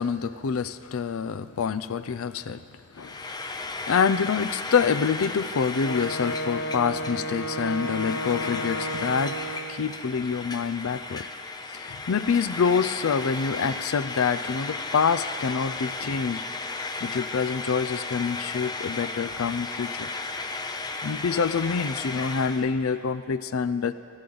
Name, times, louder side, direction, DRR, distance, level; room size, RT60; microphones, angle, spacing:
voice 1, 0.0-2.6 3.0-3.2 3.9-9.4 9.7-11.3 11.7-16.4 17.0-20.1 21.0-23.9, left 6 dB, 75° left, 14 dB, 0.5 m, -26 dB
Frying (food), 2.9-22.7, left 3 dB, 20° left, 0.6 m, -35 dB
Wind instrument woodwind instrument, 5.8-9.9, equal, 55° left, 0.8 m, -32 dB
26.5 x 12.5 x 3.9 m, 2.5 s
head